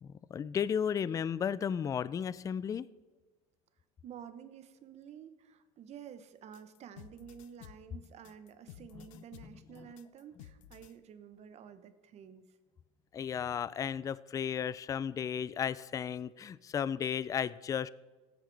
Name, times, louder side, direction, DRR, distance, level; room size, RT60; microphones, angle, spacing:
voice 1, 0.0-2.9 9.1-9.5 9.8-9.9 13.1-17.9, left 8 dB, 20° left, 0.3 m, -34 dB
voice 2, 4.0-12.5, right 8 dB, 40° right, 0.9 m, -51 dB
sound 1, 6.5-11.0, left 12 dB, 80° left, 0.6 m, -54 dB
15.0 x 9.0 x 3.4 m
supercardioid pair, 105°, 16 cm